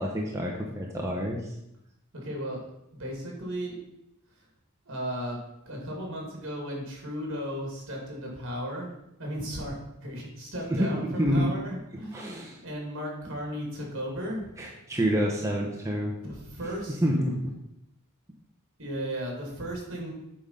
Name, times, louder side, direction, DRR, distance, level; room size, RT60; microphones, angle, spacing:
voice 1, 0.0-1.4 10.7-10.9 11.2-11.5 12.1-12.6 14.6-16.1 17.0-17.5, equal, 15° right, -2 dB, 0.8 m, -27 dB
voice 2, 2.1-2.6 2.9-3.8 4.9-5.4 5.7-8.9 9.2-9.8 10.0-12.2 12.6-14.5 16.2-17.0 18.8-20.1, equal, 60° right, 0 dB, 2.6 m, -35 dB
8.6 x 3.9 x 5.7 m, 0.84 s
head